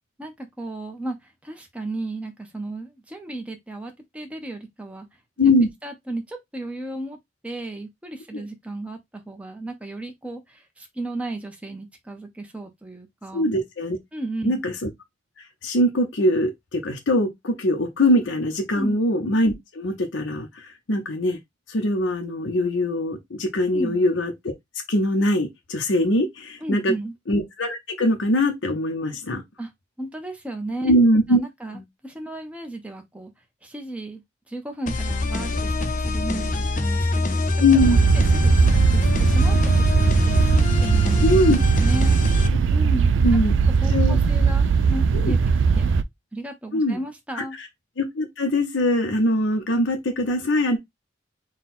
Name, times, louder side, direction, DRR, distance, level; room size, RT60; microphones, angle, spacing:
voice 1, 0.2-5.1 5.8-7.2 7.4-13.5 14.1-14.6 18.7-18.9 23.7-24.0 26.6-27.1 29.6-29.7 30.0-30.9 31.3-33.3 33.6-34.2 34.5-37.3 37.7-37.8 38.1-41.3 41.8-42.2 42.7-43.1 43.8-45.4 45.8-45.9 46.3-47.6, right 2 dB, 5° right, 0.7 m, -34 dB
voice 2, 5.4-5.7 8.3-8.4 13.3-14.0 14.4-14.7 15.6-21.4 21.7-24.3 24.9-26.9 27.3-29.4 30.8-31.4 37.6-38.0 41.2-41.6 43.2-43.5 43.9-44.2 45.1-45.4 46.7-47.0 47.3-47.4 48.0-50.8, left 1 dB, 85° left, 0.8 m, -22 dB
sound 1, 34.9-42.5, left 2 dB, 45° left, 0.7 m, -24 dB
sound 2, 37.8-46.0, right 5 dB, 80° right, 0.4 m, -19 dB
3.9 x 2.3 x 4.1 m
head